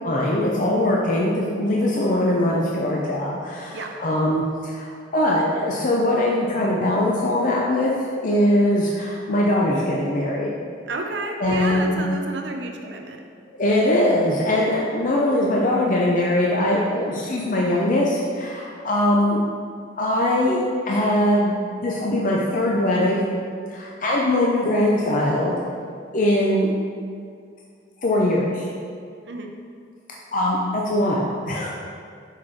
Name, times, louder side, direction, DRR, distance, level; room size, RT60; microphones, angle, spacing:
voice 1, 0.0-7.9 8.2-10.5 11.4-12.0 13.6-19.4 20.0-21.5 21.8-23.3 23.7-25.6 26.1-26.7 28.0-28.7 30.3-31.7, left 1 dB, 45° left, -3 dB, 0.6 m, -21 dB
voice 2, 10.9-13.2 29.2-29.5, right 2 dB, 65° right, 3 dB, 0.7 m, -31 dB
6.2 x 4.5 x 4.7 m, 2.2 s
head